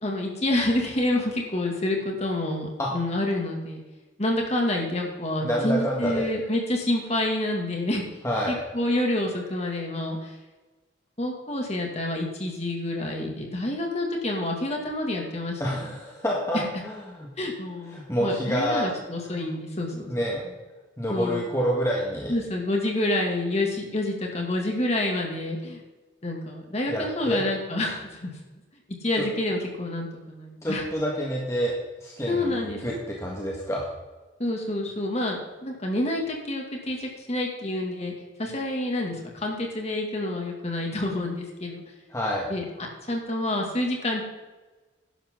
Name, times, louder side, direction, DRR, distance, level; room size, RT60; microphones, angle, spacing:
voice 1, 0.0-3.8 4.2-8.0 8.5-10.3 11.2-15.8 16.5-16.7 17.4-20.1 21.1-21.4 22.3-25.8 26.2-28.3 29.0-30.8 32.3-32.8 34.4-38.1 38.4-41.8 42.5-42.6 43.1-44.2, left 1 dB, 30° left, 1 dB, 2.2 m, -28 dB
voice 2, 5.4-6.3 8.2-8.6 15.6-17.3 17.9-18.9 19.3-19.4 19.9-20.4 21.0-22.3 26.9-27.4 29.2-29.3 30.6-33.9 42.1-42.5, equal, 15° left, -3 dB, 1.6 m, -28 dB
11.5 x 11.5 x 3.8 m, 1.2 s
head